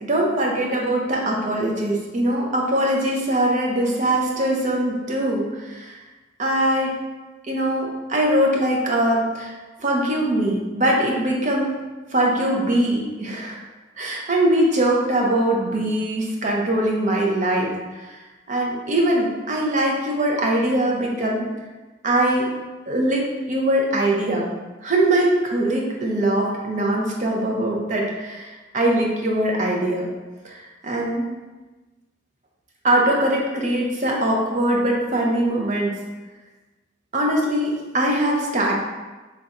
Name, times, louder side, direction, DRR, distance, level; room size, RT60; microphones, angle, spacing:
voice 1, 0.0-6.0 6.4-7.0 7.5-11.8 12.1-13.6 14.0-18.2 18.5-21.5 22.0-22.5 22.9-24.5 24.8-30.1 30.4-31.3 32.8-35.9 37.1-38.7, right 1 dB, 40° right, -1 dB, 0.6 m, -22 dB
3.2 x 2.5 x 4.0 m, 1.2 s
head